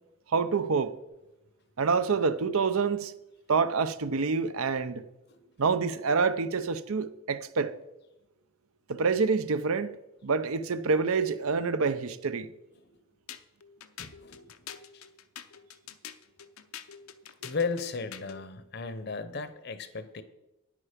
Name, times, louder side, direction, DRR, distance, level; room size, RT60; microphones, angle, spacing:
voice 1, 0.3-0.9 1.8-3.1 3.5-5.0 5.6-7.7 8.9-10.0 10.2-12.5, right 4 dB, 80° right, 0.7 m, -27 dB
sound 1, 13.3-18.4, left 8 dB, 80° left, 0.7 m, -46 dB
voice 2, 14.0-14.5 14.9-15.0 17.4-20.2, left 4 dB, 50° left, 0.8 m, -35 dB
10.0 x 8.6 x 5.1 m
head